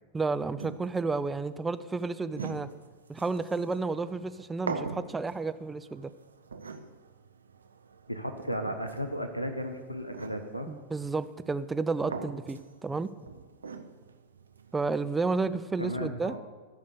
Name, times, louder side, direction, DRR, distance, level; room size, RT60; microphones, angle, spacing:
voice 1, 0.1-2.7 3.1-6.1 10.7-13.1 14.7-16.3, right 3 dB, 10° right, 12 dB, 0.5 m, -31 dB
sound 1, 0.6-15.6, right 4 dB, 75° right, 0.6 m, -44 dB
voice 2, 8.1-10.7 15.8-16.4, equal, 90° left, 7 dB, 0.8 m, -34 dB
14.0 x 5.2 x 6.7 m, 1.4 s
figure-of-eight pair, 90°, 0 cm